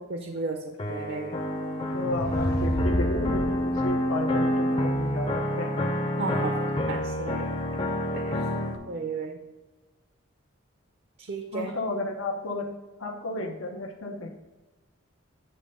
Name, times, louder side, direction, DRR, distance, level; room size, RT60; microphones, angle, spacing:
voice 1, 0.1-1.3 6.2-6.5 6.9-7.5 8.1-9.4 11.2-11.7, right 4 dB, 55° right, 5 dB, 0.5 m, -34 dB
sound 1, 0.8-8.8, left 1 dB, 25° left, 0.6 m, -28 dB
voice 2, 1.9-5.7 11.5-12.7 13.0-14.3, left 2 dB, 90° left, 2 dB, 0.8 m, -33 dB
sound 2, 2.0-3.9, equal, 50° left, 0.8 m, -29 dB
9.0 x 3.3 x 5.4 m, 1.1 s
head